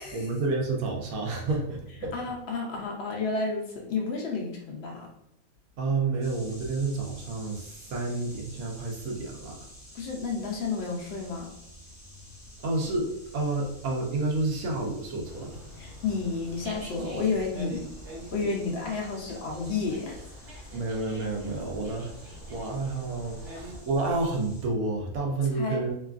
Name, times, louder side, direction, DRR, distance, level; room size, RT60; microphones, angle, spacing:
voice 1, 0.1-2.1 5.8-9.6 12.6-15.6 20.7-22.1 22.5-25.9, right 3 dB, 75° right, 0 dB, 1.1 m, -30 dB
voice 2, 2.1-5.1 9.9-11.5 15.8-18.0 18.3-20.3 23.5-23.7 25.5-25.8, left 4 dB, 65° left, 0 dB, 0.6 m, -31 dB
sound 1, 6.2-24.6, equal, 25° left, 0.4 m, -49 dB
Dog, 15.2-23.8, equal, 55° right, 1.2 m, -45 dB
2.9 x 2.3 x 2.4 m, 0.77 s
omnidirectional pair, 1.5 m